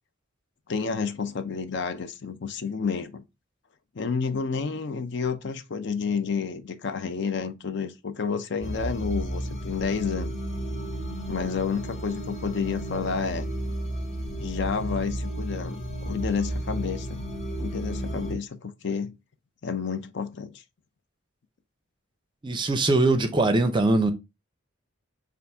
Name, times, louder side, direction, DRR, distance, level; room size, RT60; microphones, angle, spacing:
voice 1, 0.7-3.2 3.9-10.4 11.3-13.5 14.4-17.2 17.6-19.1 19.6-20.6, left 5 dB, 55° left, 0.5 m, -30 dB
sound 1, 8.6-18.3, right 1 dB, 30° left, 0.8 m, -33 dB
voice 2, 22.4-24.1, right 2 dB, 20° right, 0.5 m, -21 dB
5.6 x 2.5 x 3.3 m
head